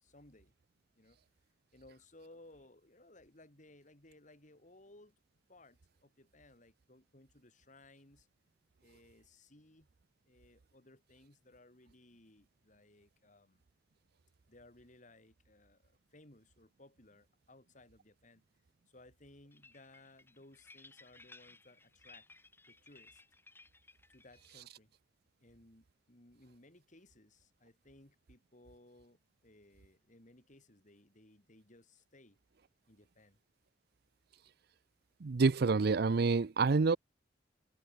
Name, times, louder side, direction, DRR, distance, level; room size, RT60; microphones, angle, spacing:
voice 1, 0.0-0.5 1.0-1.2 1.7-5.1 5.5-8.3 8.8-9.9 10.2-13.6 14.5-18.4 18.9-22.3 22.7-23.2 24.1-24.9 25.4-32.4 32.9-33.4, left 2 dB, 45° left, 3.7 m, -61 dB
sound 1, 19.5-24.6, left 3 dB, 10° left, 1.9 m, -60 dB
voice 2, 35.2-37.0, right 4 dB, 60° right, 0.5 m, -27 dB
head